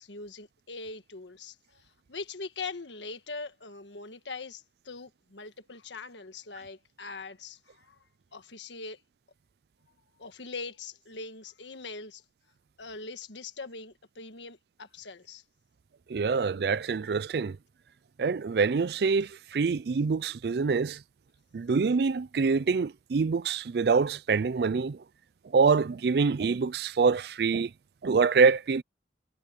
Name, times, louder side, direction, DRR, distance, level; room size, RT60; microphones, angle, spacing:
voice 1, 0.0-8.0 8.3-9.0 10.2-12.2 12.8-15.4, left 4 dB, 85° left, 1.5 m, -42 dB
voice 2, 16.1-17.6 18.2-21.0 21.5-25.0 25.5-27.7 28.0-28.8, right 5 dB, 60° right, 0.4 m, -25 dB
head